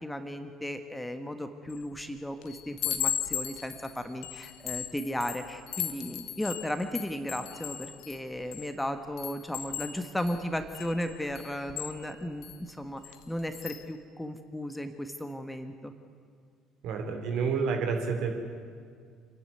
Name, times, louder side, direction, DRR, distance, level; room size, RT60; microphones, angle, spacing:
voice 1, 0.0-15.9, left 1 dB, 5° left, 8 dB, 1.4 m, -35 dB
Chime, 1.7-2.0 2.4-8.7 9.2-12.6 13.0-13.3 13.5-13.8, left 11 dB, 60° left, 1.2 m, -37 dB
voice 2, 16.8-18.3, right 5 dB, 60° right, 3 dB, 3.1 m, -29 dB
27.5 x 11.0 x 9.5 m, 2.1 s
figure-of-eight pair, 55°, 0 cm